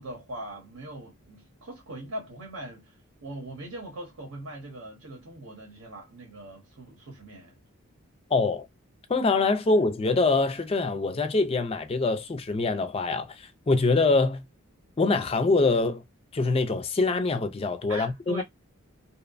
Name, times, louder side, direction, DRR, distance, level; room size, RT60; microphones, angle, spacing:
voice 1, 0.0-7.5 17.9-18.4, right 1 dB, 75° right, 1.0 m, -41 dB
voice 2, 8.3-8.7 9.1-14.4 15.0-16.0 16.3-18.4, left 3 dB, 25° left, 0.3 m, -24 dB
2.8 x 2.1 x 2.5 m
head